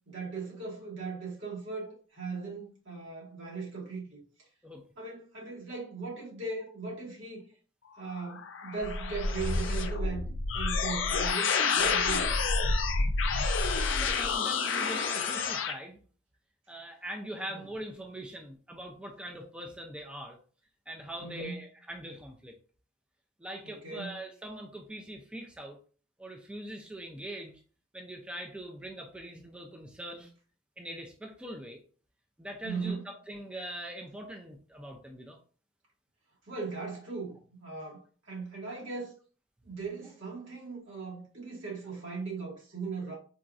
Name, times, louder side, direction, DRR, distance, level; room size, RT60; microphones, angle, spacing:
voice 1, 0.1-4.2 5.0-7.4 8.0-10.3 10.5-12.3 17.5-17.6 21.2-21.7 23.6-24.2 32.6-33.1 36.5-39.2 39.6-43.1, right 4 dB, 85° right, 1.6 m, -38 dB
sound 1, 8.0-15.7, left 4 dB, 80° left, 0.5 m, -29 dB
voice 2, 14.0-16.0 16.7-20.4 20.9-22.5 23.4-25.8 26.2-27.6 27.9-30.3 30.8-31.8 32.4-35.4, right 1 dB, 5° right, 0.3 m, -42 dB
3.9 x 2.4 x 2.3 m
head